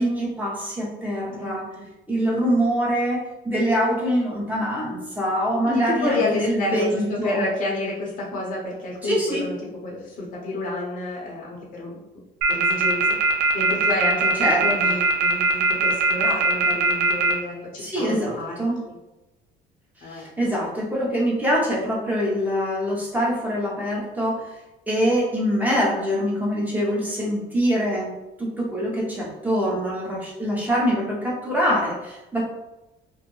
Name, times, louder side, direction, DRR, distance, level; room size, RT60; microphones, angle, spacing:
voice 1, 0.0-1.7 2.1-3.2 3.4-7.4 9.0-9.5 14.4-14.9 17.8-18.8 20.1-24.5 24.9-28.1 28.4-32.4, equal, 10° right, -4 dB, 0.9 m, -24 dB
voice 2, 1.4-1.9 5.6-9.6 9.8-12.0 12.5-13.1 13.5-19.0 20.0-20.2, left 2 dB, 55° left, -3 dB, 0.7 m, -29 dB
sound 1, 12.4-17.3, right 4 dB, 80° right, 0.5 m, -20 dB
2.4 x 2.1 x 3.1 m, 0.99 s
cardioid pair, 110°, 17 cm